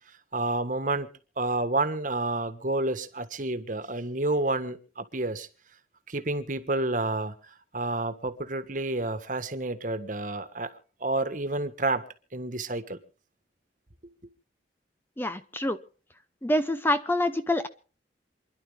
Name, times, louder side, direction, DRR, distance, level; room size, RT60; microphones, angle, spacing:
voice 1, 0.3-1.1 1.4-5.5 6.1-7.3 7.7-10.7 11.0-12.0 12.3-13.0, right 2 dB, 45° right, 10 dB, 1.5 m, -29 dB
voice 2, 15.2-15.8 16.4-17.7, left 1 dB, 10° left, 11 dB, 0.6 m, -26 dB
28.0 x 11.0 x 3.5 m, 0.38 s
head